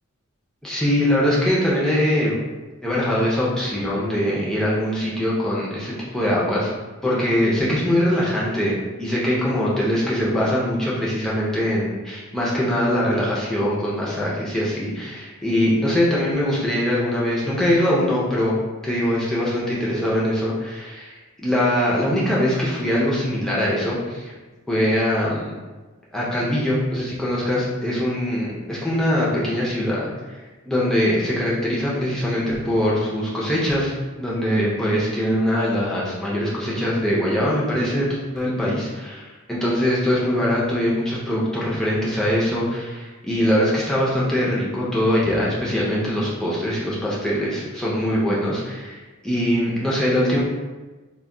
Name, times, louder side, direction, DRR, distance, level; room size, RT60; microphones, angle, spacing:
voice 1, 0.6-2.4 2.8-6.7 7.0-24.3 24.7-25.6 26.1-33.9 34.2-50.4, equal, 5° left, -7 dB, 0.4 m, -22 dB
2.2 x 2.2 x 3.6 m, 1.2 s
head